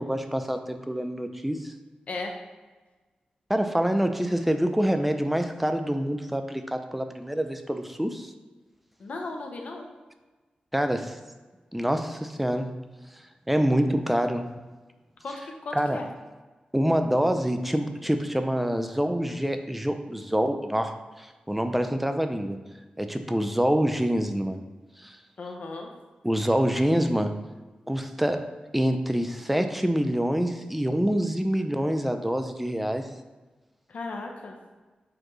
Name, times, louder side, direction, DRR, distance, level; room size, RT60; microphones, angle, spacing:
voice 1, 0.0-1.7 3.5-8.3 10.7-11.2 11.7-12.7 13.5-14.5 15.7-16.0 16.7-22.6 23.0-24.6 25.0-25.2 26.2-27.4 27.9-28.5 28.7-33.1, equal, 5° right, 7 dB, 0.4 m, -26 dB
voice 2, 9.0-9.9 15.2-16.1 25.4-25.9 33.9-34.5, left 3 dB, 60° left, 2 dB, 0.8 m, -36 dB
7.5 x 4.3 x 3.1 m, 1.3 s
wide cardioid pair, 140°, 3 cm